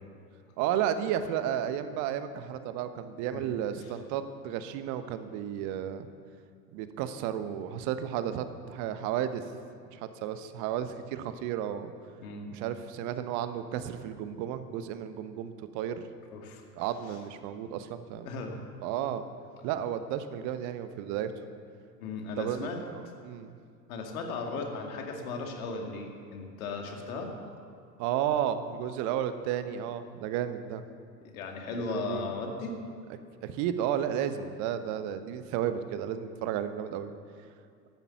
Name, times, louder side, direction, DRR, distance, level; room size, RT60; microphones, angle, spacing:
voice 1, 0.6-6.1 6.7-9.5 9.9-11.9 12.5-16.0 16.8-18.3 18.8-19.2 19.6-21.3 22.4-23.5 28.0-30.8 31.9-32.3 33.4-37.1, right 10 dB, 35° right, 11 dB, 1.0 m, -33 dB
voice 2, 16.3-16.6 18.2-18.6 22.0-22.8 23.9-27.3 31.2-32.7, left 3 dB, 55° left, 2 dB, 2.4 m, -36 dB
14.0 x 11.0 x 7.2 m, 2.3 s
figure-of-eight pair, 85°, 49 cm